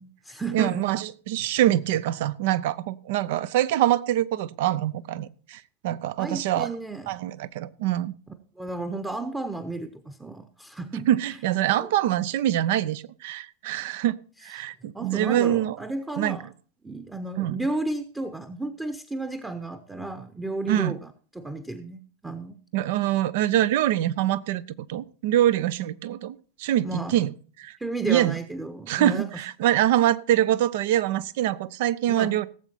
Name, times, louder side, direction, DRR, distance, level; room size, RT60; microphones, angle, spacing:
voice 1, 0.0-0.9 6.2-7.1 8.6-11.1 11.8-11.9 14.9-16.5 16.8-22.6 26.8-27.2 27.8-29.3 32.1-32.4, right 2 dB, 10° right, 1.0 m, -33 dB
voice 2, 0.5-6.7 7.1-8.1 11.1-14.2 14.4-15.8 16.2-16.4 17.4-17.6 20.7-20.9 22.7-24.6 24.9-27.3 27.6-27.8 28.0-28.4 28.9-32.5, right 12 dB, 50° right, 0.7 m, -24 dB
17.5 x 7.9 x 4.4 m
figure-of-eight pair, 90°, 0 cm